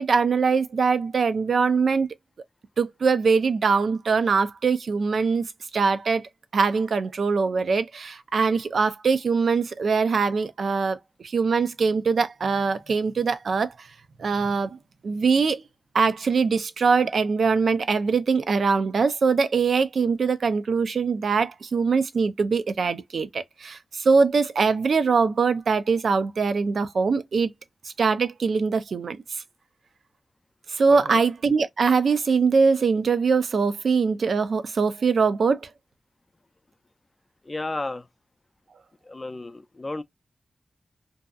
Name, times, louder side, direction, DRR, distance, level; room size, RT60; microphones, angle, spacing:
voice 1, 0.0-2.1 2.8-5.5 5.7-6.2 6.5-13.9 14.2-14.8 15.0-15.6 15.9-27.5 27.8-29.4 30.7-35.7, right 5 dB, 80° right, 0.4 m, -22 dB
voice 2, 30.9-31.2 37.4-38.1 39.0-40.0, left 2 dB, 35° left, 0.4 m, -33 dB
2.6 x 2.3 x 2.3 m
cardioid pair, 65°, 0 cm